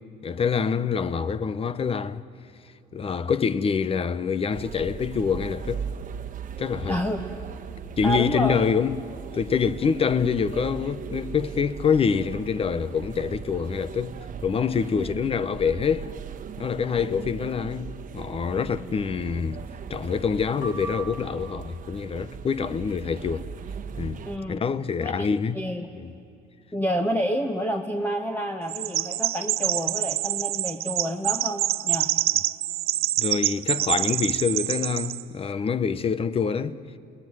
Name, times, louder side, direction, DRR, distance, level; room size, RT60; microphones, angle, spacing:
voice 1, 0.0-2.2 2.9-5.9 6.6-7.0 8.0-9.0 9.3-14.2 14.4-16.1 16.6-19.6 19.9-23.5 24.0-25.6 26.0-26.1 33.2-36.8, left 6 dB, 35° left, 0.9 m, -26 dB
sound 1, 4.5-24.4, right 7 dB, 50° right, 1.2 m, -38 dB
voice 2, 8.0-8.6 15.0-15.2 18.6-18.7 24.3-24.6 25.0-25.3 25.5-25.9 26.7-32.1, equal, 10° left, 1.4 m, -29 dB
sound 2, 20.6-21.9, right 3 dB, 85° left, 4.7 m, -39 dB
Chirp tweet, 28.7-35.2, right 14 dB, 65° right, 0.6 m, -26 dB
29.5 x 19.5 x 9.7 m
cardioid pair, 110°, 17 cm